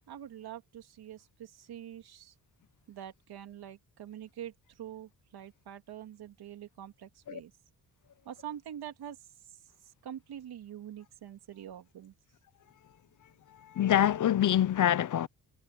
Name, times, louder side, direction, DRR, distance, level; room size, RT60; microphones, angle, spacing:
voice 1, 0.1-2.3 2.9-7.5 8.2-9.3 9.8-12.1, right 10 dB, 75° right, 3.0 m, -45 dB
voice 2, 13.6-15.3, left 11 dB, 50° left, 0.8 m, -25 dB
cardioid pair, 120°, 38 cm